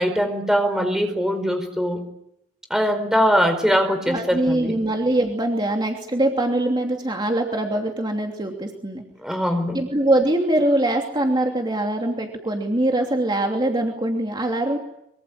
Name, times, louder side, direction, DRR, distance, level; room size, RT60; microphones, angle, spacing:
voice 1, 0.0-2.0 2.7-4.7 9.2-9.8, equal, 5° right, 7 dB, 4.5 m, -21 dB
voice 2, 4.1-9.0 9.7-14.8, right 1 dB, 25° right, 2 dB, 2.9 m, -23 dB
24.5 x 24.0 x 8.8 m, 0.81 s
head